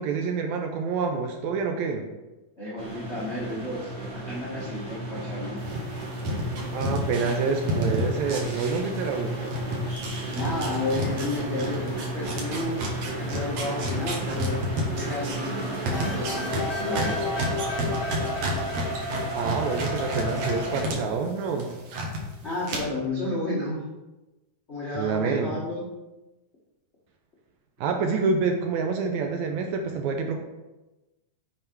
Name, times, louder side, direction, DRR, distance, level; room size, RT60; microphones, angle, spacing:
voice 1, 0.0-2.1 6.7-9.4 19.3-21.7 24.9-25.5 27.8-30.4, right 5 dB, 80° right, 4 dB, 1.7 m, -27 dB
voice 2, 2.6-5.6 10.3-14.6 14.9-17.2 22.4-23.8 24.7-25.8, left 2 dB, 75° left, -7 dB, 0.6 m, -32 dB
sound 1, 2.8-20.9, right 1 dB, 30° right, 1.2 m, -33 dB
sound 2, 5.6-9.2 9.5-21.0 21.3-22.2 22.6-22.8, right 1 dB, 60° right, 2.2 m, -31 dB
sound 3, 15.9-19.7, left 3 dB, 15° left, 1.0 m, -33 dB
7.6 x 4.7 x 4.5 m, 1.1 s
omnidirectional pair, 3.7 m